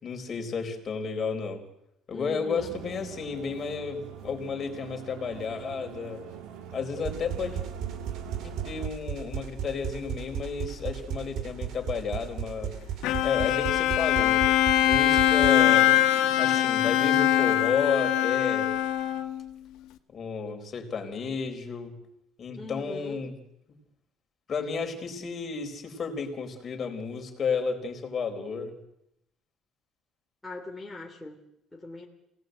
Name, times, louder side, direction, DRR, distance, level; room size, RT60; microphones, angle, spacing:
voice 1, 0.0-1.6 2.1-6.3 6.7-7.6 8.4-12.7 13.2-15.9 16.4-18.7 20.1-21.9 22.4-23.4 24.5-28.8, left 5 dB, 35° left, 3 dB, 4.2 m, -32 dB
voice 2, 2.1-2.8 22.6-23.2 30.4-31.4 31.7-32.1, left 3 dB, 10° left, -1 dB, 2.7 m, -40 dB
sound 1, 2.6-8.9, right 9 dB, 80° right, 2.6 m, -43 dB
sound 2, 7.0-15.5, right 8 dB, 65° right, 2.4 m, -35 dB
Bowed string instrument, 13.0-19.5, left 12 dB, 80° left, 1.8 m, -23 dB
27.5 x 18.0 x 7.9 m, 0.82 s
cardioid pair, 145°, 0 cm